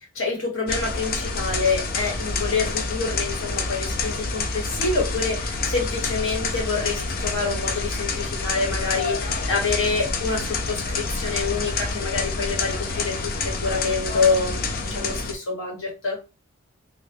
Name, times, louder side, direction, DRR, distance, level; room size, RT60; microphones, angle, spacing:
voice 1, 0.1-14.6 14.9-16.2, left 4 dB, 60° left, 0 dB, 1.3 m, -26 dB
sound 1, 0.7-15.3, left 3 dB, 40° left, 0.5 m, -28 dB
2.8 x 2.4 x 3.4 m, 0.29 s
head